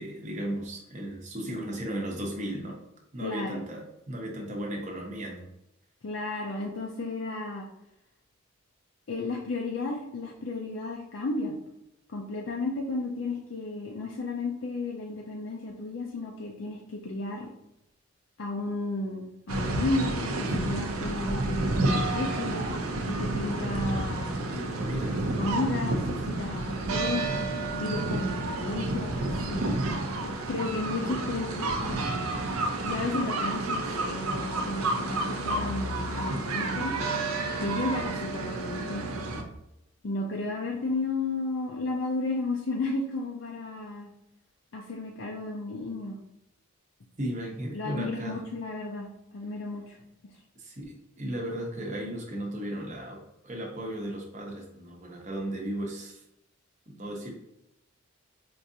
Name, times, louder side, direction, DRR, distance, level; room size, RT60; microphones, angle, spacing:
voice 1, 0.0-2.8 3.1-5.5 24.4-25.2 47.2-48.4 50.6-56.2 56.9-57.3, right 1 dB, 35° right, 0 dB, 0.7 m, -35 dB
voice 2, 3.2-3.6 6.0-7.7 9.1-11.6 12.1-17.5 18.4-22.7 23.1-24.4 25.4-27.3 27.8-29.6 30.2-32.1 32.8-36.9 37.6-39.0 40.0-44.1 44.7-46.2 47.7-49.1 49.3-50.0, left 2 dB, 60° left, -1 dB, 0.4 m, -33 dB
sound 1, 19.5-39.4, right 2 dB, 85° right, 0.6 m, -30 dB
4.5 x 2.5 x 2.7 m, 0.85 s
head